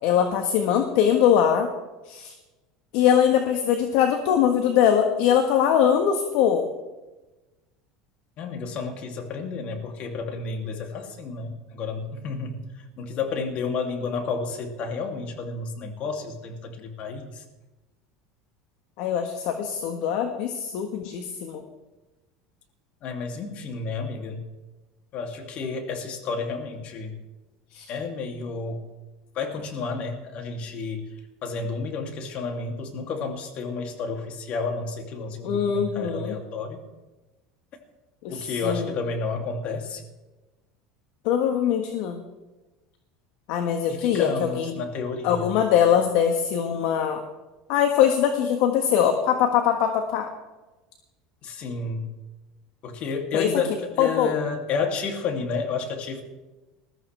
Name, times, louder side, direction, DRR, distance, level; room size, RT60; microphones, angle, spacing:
voice 1, 0.0-1.7 2.1-2.3 2.9-6.6 19.0-21.6 27.7-27.9 35.4-36.3 38.2-38.9 41.2-42.2 43.5-44.7 45.2-47.2 47.7-50.3 53.3-53.5 54.0-54.3, left 9 dB, 70° left, 5 dB, 1.5 m, -22 dB
voice 2, 8.4-17.4 23.0-24.4 25.1-27.2 27.9-28.8 29.3-36.8 38.3-40.0 43.9-45.5 51.4-52.1 52.8-56.2, left 4 dB, 50° left, 3 dB, 2.8 m, -31 dB
21.0 x 13.5 x 3.4 m, 1.1 s
supercardioid pair, 95°, 3 cm